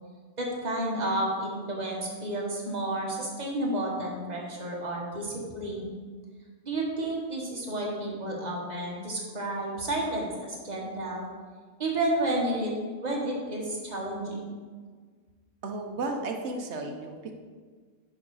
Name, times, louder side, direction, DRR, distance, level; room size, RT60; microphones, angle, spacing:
voice 1, 0.4-5.9 6.6-11.3 11.8-12.7 13.0-14.5, right 1 dB, 35° right, -2 dB, 1.5 m, -31 dB
voice 2, 15.6-17.3, right 3 dB, 70° right, 4 dB, 1.1 m, -34 dB
6.4 x 5.6 x 4.7 m, 1.5 s
omnidirectional pair, 1.2 m